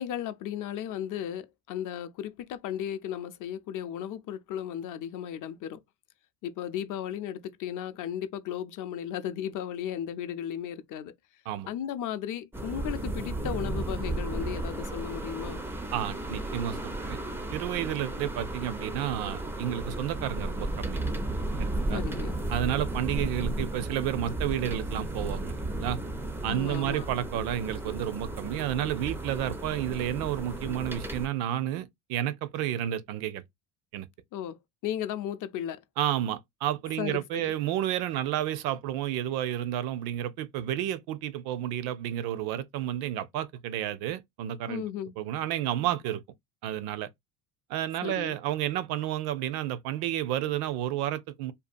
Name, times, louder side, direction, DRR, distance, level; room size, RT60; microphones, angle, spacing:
voice 1, 0.0-5.8 6.4-11.1 11.7-15.6 21.9-22.4 26.5-27.1 34.3-35.8 37.0-37.5 44.7-45.1 48.0-48.3, left 10 dB, 50° left, 0.5 m, -35 dB
sound 1, 12.5-31.3, right 2 dB, 5° right, 0.3 m, -34 dB
voice 2, 15.9-17.2 17.5-21.0 21.6-22.0 22.5-26.0 26.4-33.4 33.9-34.1 36.0-44.8 45.2-46.2 46.6-47.1 47.7-51.5, right 12 dB, 65° right, 0.5 m, -31 dB
2.6 x 2.3 x 2.5 m
supercardioid pair, 100°, 40 cm